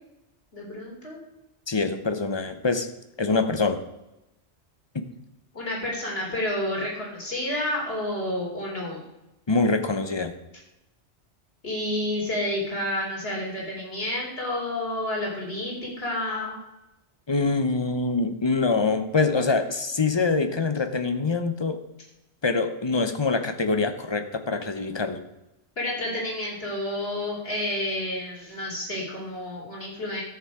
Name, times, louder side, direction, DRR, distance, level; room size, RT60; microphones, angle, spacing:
voice 1, 0.5-1.2 5.5-9.0 11.6-16.6 25.8-30.2, left 1 dB, 60° left, -3 dB, 3.9 m, -30 dB
voice 2, 1.7-2.9 3.2-3.8 9.5-10.3 17.3-21.8 22.4-25.2, left 3 dB, 25° left, 8 dB, 0.9 m, -24 dB
13.0 x 7.1 x 5.0 m, 0.95 s
omnidirectional pair, 1.2 m